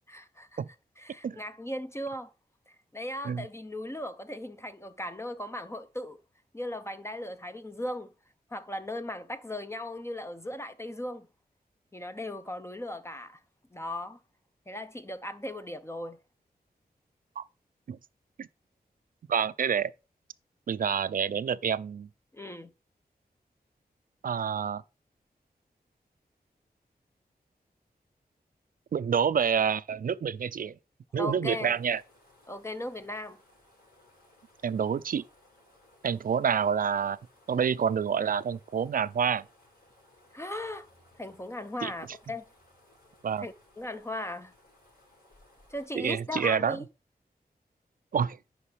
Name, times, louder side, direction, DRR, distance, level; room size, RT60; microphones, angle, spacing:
voice 1, 0.1-0.6 1.0-2.3 2.9-6.2 6.5-8.1 8.5-11.3 11.9-13.4 13.7-14.2 14.7-16.2 22.3-22.7 31.2-31.7 32.5-33.4 40.3-40.9 41.2-42.4 43.4-44.5 45.7-46.8, left 1 dB, 15° left, 0.5 m, -37 dB
voice 2, 19.3-19.9 20.7-22.1 24.2-24.8 28.9-30.7 31.1-32.0 34.6-35.2 36.0-37.2 37.5-39.4 41.8-41.9 43.2-43.5 45.9-46.8 48.1-48.4, right 7 dB, 60° right, 0.4 m, -28 dB
sound 1, 31.5-45.9, left 1 dB, 70° left, 5.3 m, -61 dB
10.0 x 5.0 x 3.3 m
wide cardioid pair, 105°, 16 cm